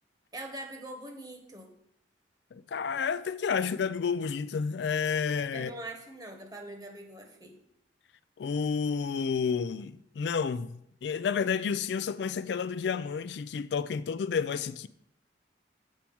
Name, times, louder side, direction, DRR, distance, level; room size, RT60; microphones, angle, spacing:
voice 1, 0.3-1.7 5.5-7.6, right 1 dB, 20° right, 1.2 m, -43 dB
voice 2, 2.5-5.7 8.4-14.9, left 6 dB, 70° left, 0.4 m, -30 dB
7.5 x 4.5 x 7.0 m
head